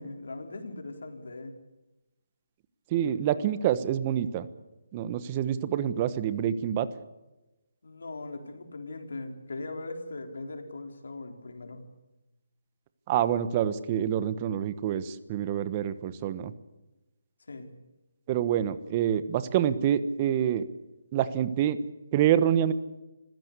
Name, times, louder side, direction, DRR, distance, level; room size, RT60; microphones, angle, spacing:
voice 1, 0.0-1.6 7.8-11.8 17.5-17.7, left 2 dB, 75° left, 5 dB, 4.1 m, -40 dB
voice 2, 2.9-4.5 4.9-6.9 13.1-16.5 18.3-20.6 21.1-21.8 22.1-22.7, right 10 dB, 25° right, 14 dB, 1.2 m, -27 dB
26.5 x 16.0 x 8.3 m, 1.0 s
hypercardioid pair, 160°, 0 cm